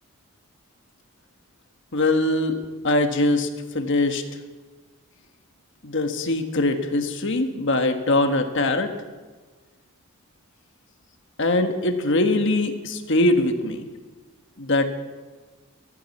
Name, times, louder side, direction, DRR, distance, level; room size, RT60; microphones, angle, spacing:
voice 1, 1.9-2.6 2.8-3.5 3.7-4.2 5.8-8.9 11.4-13.8 14.6-14.9, left 2 dB, 55° left, 6 dB, 1.5 m, -22 dB
14.0 x 14.0 x 7.3 m, 1.3 s
head